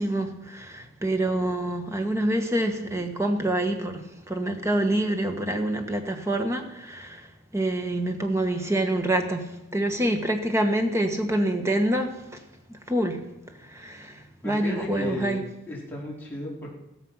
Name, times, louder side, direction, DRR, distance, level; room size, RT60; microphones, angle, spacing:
voice 1, 0.0-12.4 12.9-13.2 13.6-15.4, right 1 dB, 15° right, 5 dB, 1.8 m, -26 dB
voice 2, 14.4-16.7, left 1 dB, 10° left, -5 dB, 4.6 m, -34 dB
16.5 x 14.0 x 5.8 m, 0.89 s
head